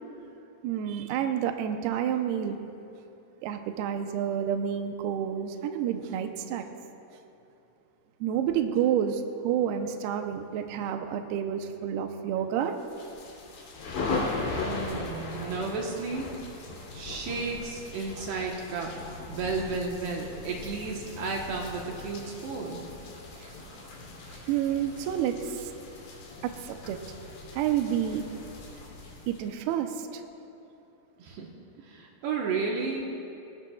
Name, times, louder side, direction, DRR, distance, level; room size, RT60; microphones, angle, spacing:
voice 1, 0.6-2.6 3.4-6.6 8.2-12.7 24.5-25.6 26.4-27.0 27.5-28.2 29.3-30.2, right 9 dB, 90° right, 5 dB, 2.2 m, -29 dB
sound 1, 12.8-29.7, left 3 dB, 70° left, 5.1 m, -38 dB
voice 2, 14.6-16.3 16.9-18.9 19.3-22.9 31.2-31.5 31.8-33.0, right 4 dB, 70° right, -1 dB, 2.9 m, -33 dB
27.0 x 19.5 x 2.3 m, 2.9 s
omnidirectional pair, 5.6 m